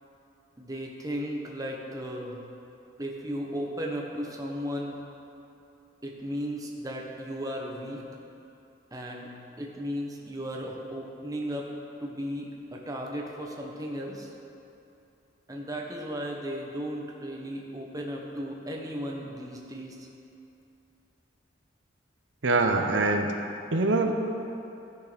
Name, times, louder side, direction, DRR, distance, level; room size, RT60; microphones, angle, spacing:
voice 1, 0.6-2.4 3.0-5.0 6.0-8.0 8.9-11.7 12.0-14.3 15.5-20.1, equal, 20° right, -1 dB, 1.2 m, -35 dB
voice 2, 22.4-23.3 23.7-24.1, right 3 dB, 85° right, 4 dB, 0.8 m, -23 dB
14.0 x 6.5 x 5.2 m, 2.8 s
head